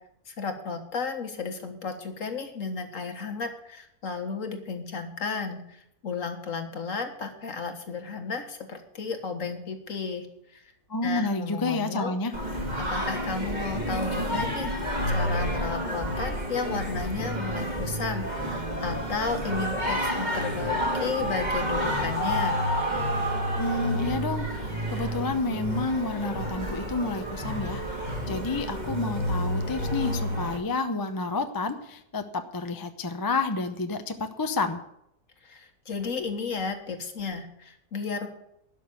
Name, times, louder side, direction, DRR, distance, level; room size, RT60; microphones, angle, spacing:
voice 1, 0.3-10.3 10.5-10.6 11.0-12.1 12.9-22.7 35.4-38.3, left 4 dB, 55° left, 6 dB, 1.9 m, -33 dB
voice 2, 10.9-12.3 23.6-27.8 28.3-34.8, left 3 dB, 20° left, 7 dB, 0.6 m, -30 dB
Singing, 12.3-30.6, equal, 30° right, 2.0 m, -29 dB
12.0 x 6.2 x 9.5 m, 0.76 s
omnidirectional pair, 1.7 m